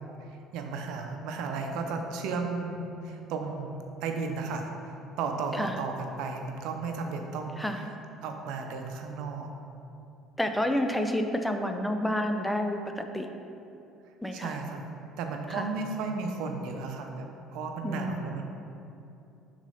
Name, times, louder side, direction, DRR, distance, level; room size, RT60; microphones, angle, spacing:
voice 1, 0.5-7.6 8.2-9.5 14.3-14.8 15.2-18.5, right 4 dB, 75° right, 3 dB, 0.7 m, -34 dB
voice 2, 10.4-13.3 14.2-14.6 15.5-15.7 17.8-18.4, left 1 dB, 5° left, 5 dB, 0.5 m, -30 dB
6.1 x 4.0 x 5.6 m, 2.8 s
supercardioid pair, 80°, 0 cm